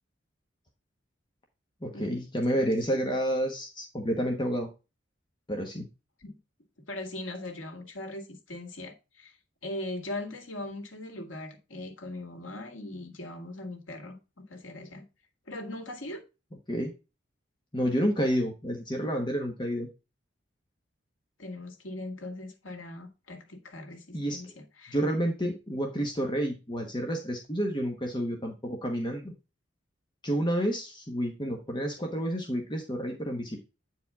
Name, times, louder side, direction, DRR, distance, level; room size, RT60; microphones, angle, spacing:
voice 1, 1.8-4.7 5.5-5.9 16.7-16.9 17.7-19.9 24.1-24.5 24.9-29.3 30.2-33.6, equal, 25° left, 1.2 m, -30 dB
voice 2, 2.5-3.0 6.2-6.4 6.9-9.3 9.6-15.0 15.5-16.2 21.4-25.0, left 1 dB, 85° left, 1.9 m, -40 dB
8.9 x 4.7 x 3.6 m
head